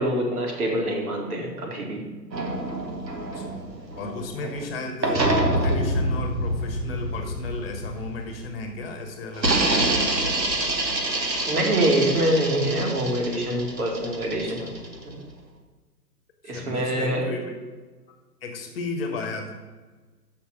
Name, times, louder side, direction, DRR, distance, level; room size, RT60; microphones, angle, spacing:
voice 1, 0.0-2.0 11.5-14.7 15.1-15.2 16.5-17.3, right 1 dB, 60° right, 0 dB, 2.3 m, -25 dB
sound 1, 2.3-4.6 5.0-8.6 9.3-15.1, right 1 dB, 80° right, 1.6 m, -26 dB
voice 2, 3.1-3.6 4.0-5.2 5.6-9.7 16.4-17.5 18.4-19.5, left 3 dB, 35° left, 4 dB, 1.3 m, -34 dB
6.7 x 5.8 x 6.2 m, 1.3 s
figure-of-eight pair, 120°, 49 cm